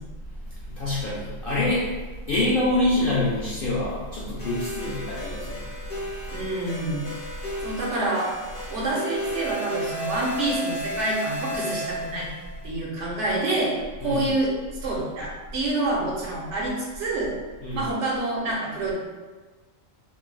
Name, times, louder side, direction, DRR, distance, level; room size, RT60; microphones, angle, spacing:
voice 1, 0.7-1.8 2.3-5.6 14.0-14.3 17.6-17.9, left 1 dB, 60° left, -7 dB, 0.6 m, -25 dB
sound 1, 4.4-12.5, equal, 45° left, 1.0 m, -33 dB
voice 2, 6.3-7.1 7.6-8.3 8.7-12.3 12.6-14.5 14.8-17.3 17.7-18.9, right 2 dB, 70° right, -4 dB, 0.9 m, -27 dB
3.2 x 2.3 x 2.2 m, 1.3 s
omnidirectional pair, 1.4 m